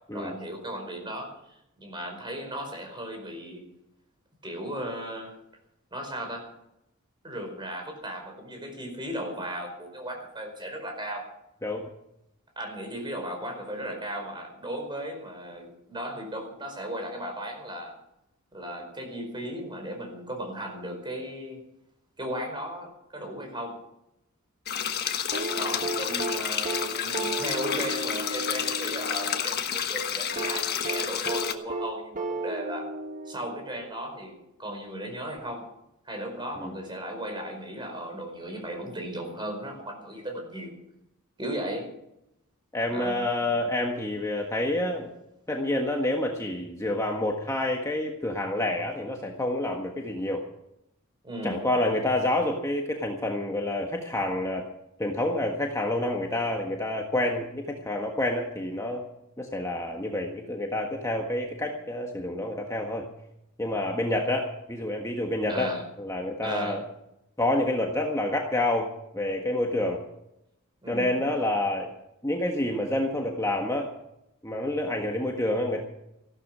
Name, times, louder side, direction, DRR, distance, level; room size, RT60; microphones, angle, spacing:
voice 1, 0.1-3.6 4.4-5.4 5.9-6.5 7.2-11.3 12.5-17.9 18.5-21.6 22.2-23.8 25.5-32.9 33.2-35.7 36.0-40.8 41.4-41.9 42.9-43.2 51.2-51.7 65.5-65.8 66.4-66.8 70.8-71.1, right 1 dB, 20° right, 3 dB, 4.9 m, -36 dB
sound 1, 24.7-31.5, left 8 dB, 50° left, 1.3 m, -30 dB
sound 2, 25.3-29.4 30.4-33.9 35.4-35.5, right 2 dB, 40° right, 1.4 m, -34 dB
voice 2, 42.7-45.1 45.5-50.4 51.4-54.6 55.0-59.0 59.4-63.1 63.6-65.7 66.0-66.8 67.4-70.0 70.9-71.9 72.2-73.9 74.4-75.8, left 1 dB, 15° left, 1 dB, 1.5 m, -28 dB
15.5 x 12.5 x 6.2 m, 0.84 s
head